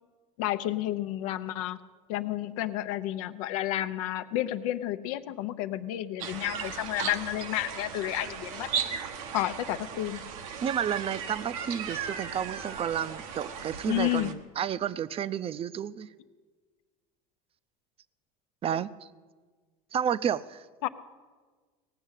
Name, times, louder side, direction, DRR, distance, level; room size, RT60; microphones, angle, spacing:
voice 1, 0.4-1.8 2.1-8.7 9.3-10.2 13.9-14.3 20.8-20.9, left 14 dB, 80° left, 11 dB, 0.7 m, -31 dB
sound 1, 6.2-14.3, right 7 dB, 85° right, 1.1 m, -36 dB
voice 2, 10.6-16.1 18.6-18.9 19.9-20.6, right 9 dB, 35° right, 16 dB, 0.5 m, -31 dB
18.0 x 6.5 x 8.2 m, 1.5 s
supercardioid pair, 100°, 18 cm